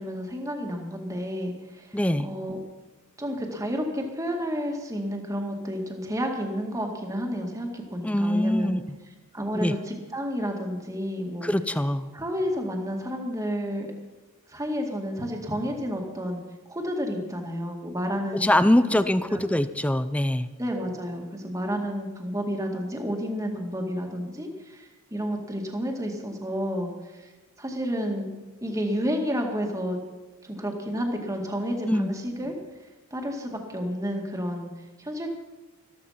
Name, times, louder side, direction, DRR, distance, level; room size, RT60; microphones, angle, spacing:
voice 1, 0.0-2.6 3.2-8.7 9.3-11.5 12.1-13.9 14.5-16.4 16.7-18.5 18.9-19.0 19.3-19.4 20.6-27.3 27.6-28.3 28.6-30.0 30.4-32.5 33.1-34.7 35.0-35.3, equal, 15° right, 2 dB, 2.0 m, -31 dB
voice 2, 1.9-2.3 8.0-8.8 9.5-9.7 11.4-12.1 18.3-20.5 31.8-32.1, left 1 dB, 5° left, 12 dB, 0.5 m, -23 dB
14.0 x 13.5 x 5.8 m, 1.2 s
head